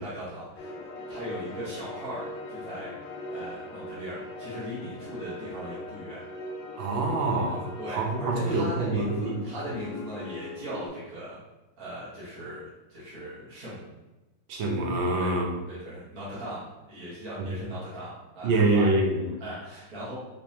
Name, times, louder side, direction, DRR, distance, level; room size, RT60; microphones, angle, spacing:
voice 1, 0.0-6.2 7.8-11.4 11.8-13.9 15.2-15.4 15.7-18.9 19.4-20.1, equal, 45° right, -10 dB, 1.7 m, -39 dB
sound 1, 0.6-10.9, left 2 dB, 70° left, 1.3 m, -40 dB
voice 2, 6.8-9.4 14.5-15.5 17.4-17.7 18.4-19.3, right 2 dB, 70° right, 1 dB, 1.5 m, -26 dB
5.2 x 3.2 x 2.8 m, 1.1 s
omnidirectional pair, 2.3 m